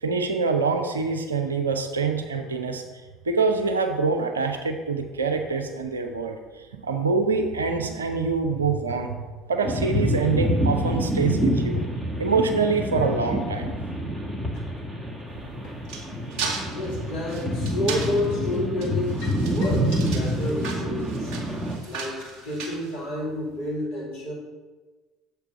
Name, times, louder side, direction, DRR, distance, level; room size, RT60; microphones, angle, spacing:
voice 1, 0.0-2.8 3.3-6.4 6.8-9.2 9.5-11.8 12.2-13.7, right 4 dB, 80° right, 5 dB, 0.6 m, -25 dB
sound 1, 9.6-21.8, equal, 10° right, 1.4 m, -27 dB
sound 2, 15.3-23.5, right 4 dB, 60° right, 1.1 m, -36 dB
voice 2, 16.7-21.4 21.8-24.3, left 1 dB, 70° left, -7 dB, 2.7 m, -30 dB
7.0 x 4.7 x 5.8 m, 1.3 s
figure-of-eight pair, 60°, 0 cm